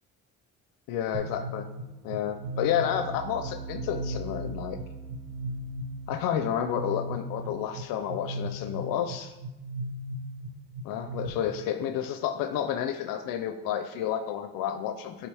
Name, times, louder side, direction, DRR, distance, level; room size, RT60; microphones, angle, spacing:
voice 1, 0.9-1.7 2.0-4.8 6.1-9.3 10.8-15.3, left 9 dB, 90° left, 7 dB, 0.6 m, -30 dB
sound 1, 1.1-11.3, right 1 dB, 70° right, 1.6 m, -37 dB
10.5 x 4.7 x 3.4 m, 1.0 s
cardioid pair, 100°, 33 cm